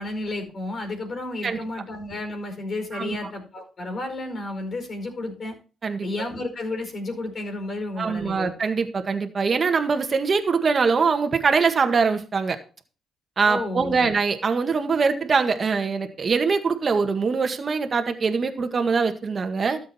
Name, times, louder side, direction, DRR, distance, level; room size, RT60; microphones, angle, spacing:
voice 1, 0.0-5.5 6.0-8.5 13.5-14.1, left 2 dB, 45° left, 4 dB, 4.9 m, -32 dB
voice 2, 2.9-3.3 5.8-6.1 8.0-12.6 13.4-19.8, right 5 dB, 40° right, 7 dB, 1.8 m, -23 dB
13.0 x 7.7 x 4.4 m, 0.36 s
cardioid pair, 90°, 0 cm